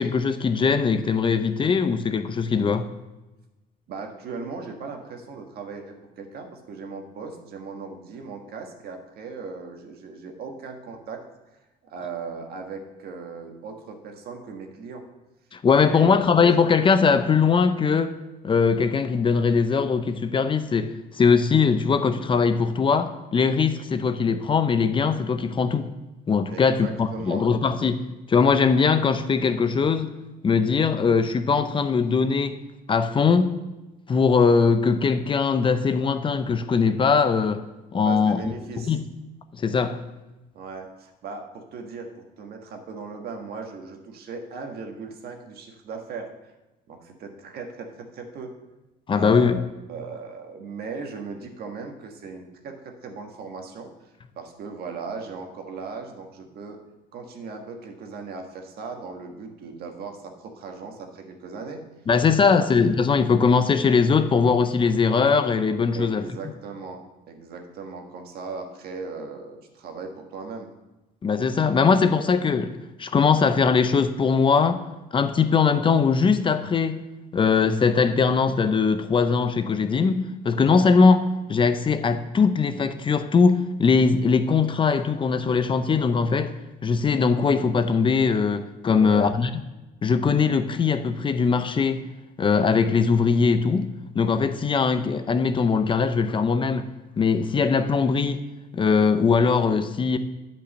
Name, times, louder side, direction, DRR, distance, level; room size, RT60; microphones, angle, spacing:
voice 1, 0.0-2.9 15.5-18.1 18.4-25.9 26.3-28.0 28.3-30.1 30.4-32.6 32.9-33.6 34.1-37.6 37.9-38.4 38.8-39.0 39.5-40.0 49.1-49.6 62.1-66.2 71.2-74.8 75.1-77.0 77.3-86.5 86.8-89.5 90.0-92.0 92.4-96.9 97.2-98.4 98.7-100.2, left 5 dB, 30° left, 10 dB, 0.6 m, -21 dB
voice 2, 3.9-11.2 11.8-15.0 15.7-16.2 26.5-27.5 38.0-39.0 40.5-46.3 46.9-48.5 49.1-49.6 49.9-56.8 57.1-61.8 62.4-62.5 65.9-70.7 88.9-89.3, right 4 dB, 65° right, 3 dB, 1.5 m, -38 dB
8.8 x 5.3 x 6.6 m, 1.1 s
cardioid pair, 110°, 17 cm